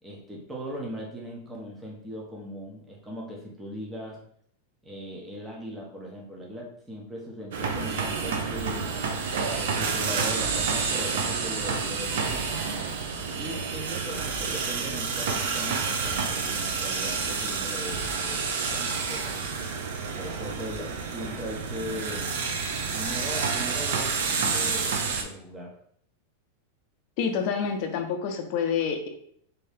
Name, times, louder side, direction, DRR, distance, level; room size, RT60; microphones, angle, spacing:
voice 1, 0.0-4.2 4.8-12.6 13.4-19.4 20.2-22.4 22.9-25.8, equal, 10° right, -2 dB, 0.6 m, -39 dB
sound 1, 7.5-25.2, right 5 dB, 70° right, 0.5 m, -29 dB
voice 2, 27.2-29.1, left 6 dB, 40° left, 4 dB, 0.5 m, -27 dB
2.7 x 2.7 x 3.3 m, 0.65 s
supercardioid pair, 160°, 0 cm